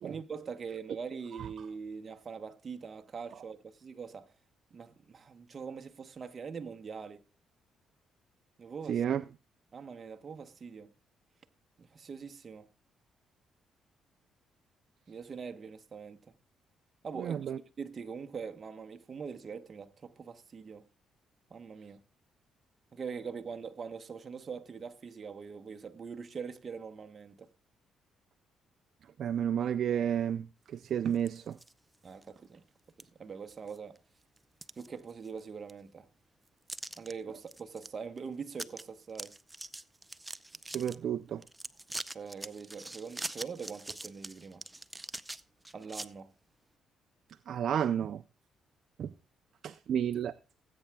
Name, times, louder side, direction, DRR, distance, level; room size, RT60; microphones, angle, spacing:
voice 1, 0.0-4.3 4.7-7.2 8.6-9.0 9.7-10.9 11.8-12.7 15.1-16.3 17.0-17.5 17.8-20.8 21.5-22.0 22.9-27.5 32.0-32.6 33.0-34.0 34.8-36.1 37.0-39.4 42.1-44.6 45.7-46.3, right 6 dB, 40° right, 1.0 m, -43 dB
voice 2, 8.9-9.2 17.2-17.6 29.2-31.6 40.7-41.4 47.5-48.2 49.0-49.1 49.6-50.3, right 9 dB, 65° right, 0.4 m, -31 dB
sound 1, 31.1-31.7 32.2-32.3 33.0-33.1 33.5-34.0 34.4-35.4 35.7-35.8 36.7-37.1 37.5-37.9 38.2-38.3 38.5-38.8 39.1-41.0 41.4-46.1, right 2 dB, 15° right, 0.5 m, -43 dB
19.5 x 8.5 x 2.3 m
cardioid pair, 90°, 0 cm